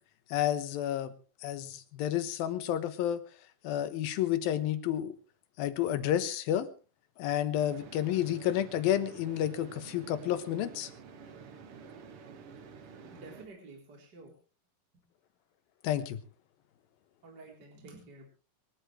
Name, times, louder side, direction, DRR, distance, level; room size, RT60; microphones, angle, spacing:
voice 1, 0.3-1.1 1.4-3.2 3.6-5.2 5.6-6.7 7.2-10.9 15.8-16.2, left 11 dB, 85° left, 12 dB, 3.0 m, -30 dB
sound 1, 7.5-13.5, right 5 dB, 55° right, 1.7 m, -49 dB
voice 2, 13.0-14.3 17.2-18.3, right 3 dB, 30° right, 0 dB, 4.0 m, -50 dB
25.0 x 13.0 x 3.3 m, 0.35 s
omnidirectional pair, 4.2 m